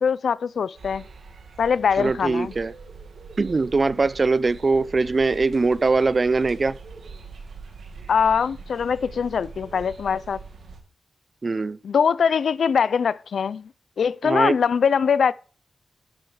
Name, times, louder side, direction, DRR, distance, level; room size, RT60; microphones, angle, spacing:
voice 1, 0.0-1.0 1.6-2.5 8.1-10.4 11.8-13.7 14.0-15.3, left 6 dB, 80° left, 0.4 m, -22 dB
sound 1, 0.8-10.8, right 4 dB, 85° right, 2.1 m, -42 dB
voice 2, 2.0-2.7 3.4-6.7 11.4-11.8 14.2-14.6, right 3 dB, 40° right, 0.5 m, -21 dB
12.0 x 6.2 x 4.9 m
wide cardioid pair, 100°, 0 cm